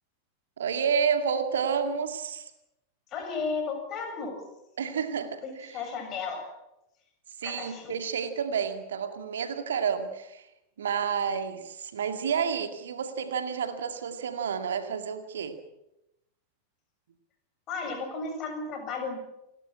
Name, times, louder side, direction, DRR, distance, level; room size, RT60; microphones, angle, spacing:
voice 1, 0.6-2.5 4.8-5.7 7.4-10.4 10.8-15.6, right 7 dB, 65° right, 8 dB, 2.0 m, -30 dB
voice 2, 3.1-4.4 5.4-6.5 7.4-8.0 17.7-19.2, left 4 dB, 35° left, 5 dB, 6.9 m, -34 dB
29.5 x 13.0 x 8.8 m, 0.91 s
figure-of-eight pair, 90°, 0 cm